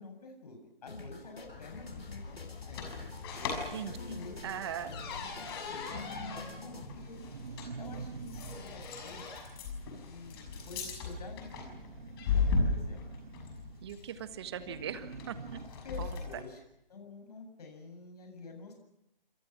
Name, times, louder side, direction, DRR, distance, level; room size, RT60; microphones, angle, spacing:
voice 1, 0.0-3.1 3.4-4.4 4.8-5.9 6.6-7.2 7.8-9.3 9.9-11.7 12.4-13.0 15.8-16.6 16.9-18.7, left 3 dB, 40° left, 4 dB, 7.9 m, -48 dB
sound 1, 0.9-6.9, left 2 dB, 90° left, 4.1 m, -49 dB
sound 2, 1.4-16.5, left 4 dB, 25° left, 6.2 m, -38 dB
voice 2, 3.7-4.9 13.8-15.6 16.0-16.2, right 9 dB, 25° right, 11 dB, 1.5 m, -40 dB
sound 3, 4.1-15.7, right 5 dB, 55° right, 2.3 m, -49 dB
28.5 x 27.0 x 6.1 m, 0.85 s
figure-of-eight pair, 150°, 29 cm